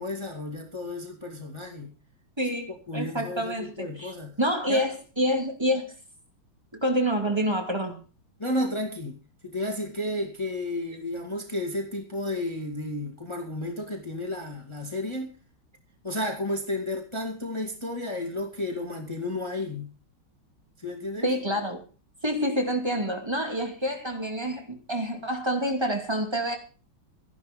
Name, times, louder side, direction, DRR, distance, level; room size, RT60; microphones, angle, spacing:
voice 1, 0.0-1.9 2.9-4.3 4.7-4.8 8.4-15.3 16.0-19.9 20.8-21.4, left 1 dB, 15° left, 2.1 m, -32 dB
voice 2, 2.4-5.8 6.7-8.0 21.2-21.8 22.2-26.6, equal, 10° right, 2.4 m, -27 dB
13.5 x 11.5 x 5.3 m
omnidirectional pair, 2.3 m